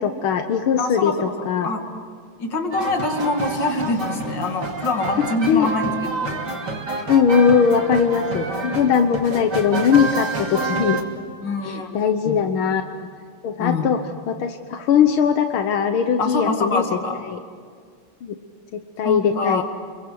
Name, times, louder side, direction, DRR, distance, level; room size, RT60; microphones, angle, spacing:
voice 1, 0.0-1.7 5.2-5.7 7.1-11.0 11.6-12.8 13.4-17.0 17.3-17.4 18.2-18.4 18.7-19.6, left 7 dB, 85° left, 7 dB, 1.9 m, -20 dB
voice 2, 0.8-1.1 1.6-1.8 2.4-6.3 11.4-11.9 12.3-12.4 13.6-13.9 16.2-17.2 19.0-19.6, left 3 dB, 60° left, 4 dB, 3.1 m, -24 dB
sound 1, 2.7-11.0, right 3 dB, 55° right, 3.3 m, -28 dB
30.0 x 23.0 x 7.9 m, 2.1 s
omnidirectional pair, 2.2 m